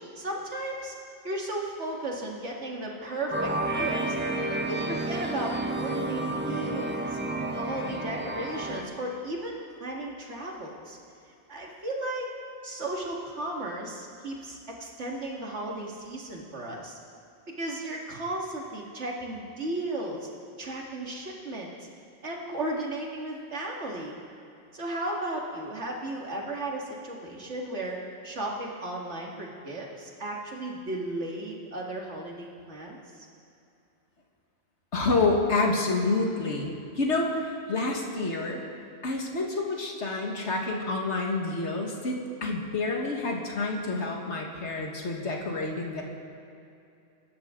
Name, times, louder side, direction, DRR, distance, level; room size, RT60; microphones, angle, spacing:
voice 1, 0.2-1.0 1.2-4.2 4.5-7.2 7.5-11.0 11.5-12.3 12.6-17.0 17.6-20.3 20.6-21.7 22.2-24.2 24.7-28.0 28.2-33.3, right 1 dB, 90° right, -2 dB, 2.4 m, -35 dB
sound 1, 3.3-8.8, right 2 dB, 10° right, 0.9 m, -31 dB
voice 2, 34.9-38.6 39.0-46.0, left 3 dB, 85° left, 0 dB, 2.0 m, -28 dB
25.0 x 12.0 x 3.8 m, 2.6 s
omnidirectional pair, 1.1 m